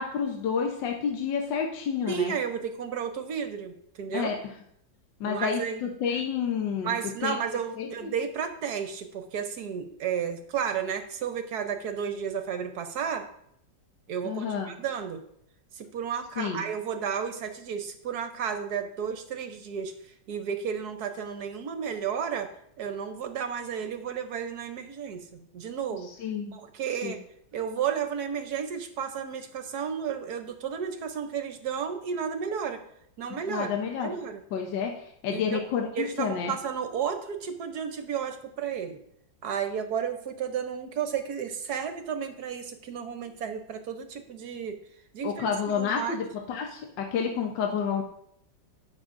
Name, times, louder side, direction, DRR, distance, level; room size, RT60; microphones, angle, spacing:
voice 1, 0.0-2.3 4.1-4.4 5.2-6.9 7.2-7.4 7.8-8.1 14.2-14.7 16.4-16.6 25.9-26.5 27.0-27.2 33.5-34.1 34.5-36.5 45.2-48.0, left 6 dB, 70° left, 2 dB, 1.4 m, -30 dB
voice 2, 2.1-4.3 5.2-5.8 6.8-13.3 14.1-15.2 15.7-19.9 20.3-26.1 26.5-27.2 27.5-32.8 33.2-33.7 34.0-34.4 35.3-35.7 35.9-39.0 39.4-44.8 45.1-46.2, right 7 dB, 65° right, 7 dB, 1.1 m, -32 dB
17.5 x 6.3 x 2.5 m, 0.73 s
omnidirectional pair, 2.1 m